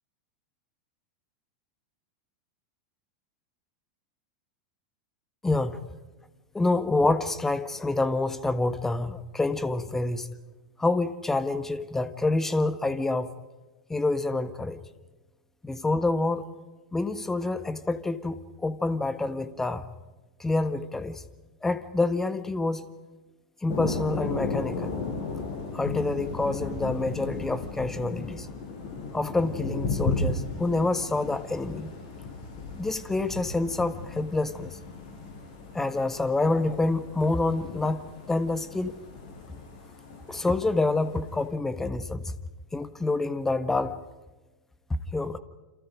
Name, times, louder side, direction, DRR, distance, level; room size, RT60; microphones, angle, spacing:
voice 1, 5.4-5.8 6.5-10.3 10.8-13.3 13.9-14.8 15.6-16.5 16.9-19.9 20.4-21.2 21.6-22.9 23.6-24.9 25.7-28.5 29.1-31.9 32.8-34.8 35.7-39.0 40.3-42.3 42.7-44.0 44.9-45.4, left 2 dB, 10° left, 1.4 m, -27 dB
Thunder, 23.7-41.5, left 3 dB, 45° left, 6.0 m, -35 dB
29.0 x 27.5 x 5.2 m
figure-of-eight pair, 90°, 4 cm